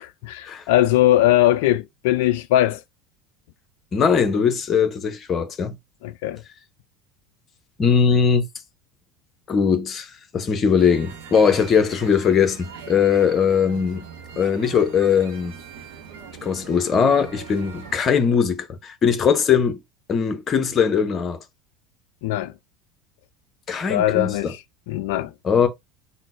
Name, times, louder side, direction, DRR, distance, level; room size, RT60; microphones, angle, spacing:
voice 1, 0.2-2.8 6.0-6.4 22.2-22.5 23.9-24.6 24.9-25.3, left 14 dB, 60° left, 0.3 m, -20 dB
voice 2, 3.9-5.8 7.8-8.5 9.5-14.0 14.4-15.5 16.4-19.8 20.1-21.4 23.7-24.5 25.4-25.7, left 6 dB, 30° left, 0.7 m, -20 dB
sound 1, 10.8-18.0, right 6 dB, 60° right, 0.7 m, -41 dB
3.8 x 2.1 x 3.6 m
figure-of-eight pair, 70°, 0 cm